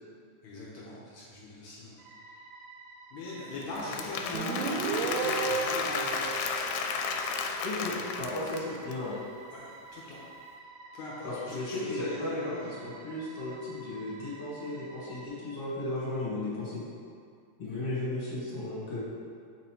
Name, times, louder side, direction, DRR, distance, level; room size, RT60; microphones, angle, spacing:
voice 1, 0.4-1.9 2.3-2.4 3.1-6.5 9.5-10.2 10.9-12.8 17.6-17.8, left 2 dB, 75° left, -6 dB, 1.7 m, -41 dB
sound 1, 2.0-15.3, right 3 dB, 70° right, 1.8 m, -50 dB
Applause / Crowd, 3.6-8.9, left 5 dB, 90° left, 2.6 m, -33 dB
Guitar, 4.3-7.8, right 5 dB, 90° right, 2.6 m, -34 dB
voice 2, 7.6-9.2 11.2-16.8 17.6-19.0, left 2 dB, 45° left, -9 dB, 2.2 m, -35 dB
8.2 x 3.9 x 4.5 m, 2.3 s
omnidirectional pair, 4.6 m